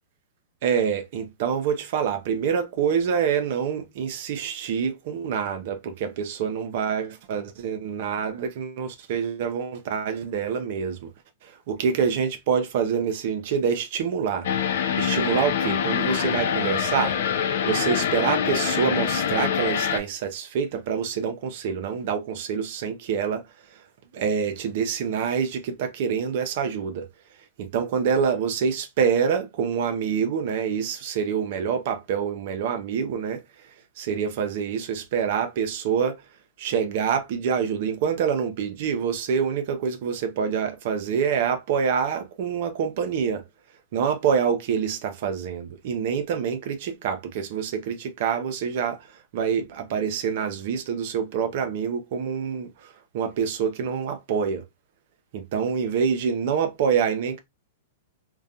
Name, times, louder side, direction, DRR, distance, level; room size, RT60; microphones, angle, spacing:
voice 1, 0.6-11.1 11.4-14.5 15.0-17.2 17.7-23.4 23.7-23.8 24.1-27.1 27.6-33.4 34.0-36.2 36.6-43.4 43.9-54.6 55.3-57.4, right 7 dB, 60° right, 0.5 m, -26 dB
sound 1, 14.4-20.0, left 8 dB, 70° left, 0.4 m, -25 dB
2.4 x 2.2 x 2.7 m
hypercardioid pair, 125°, 0 cm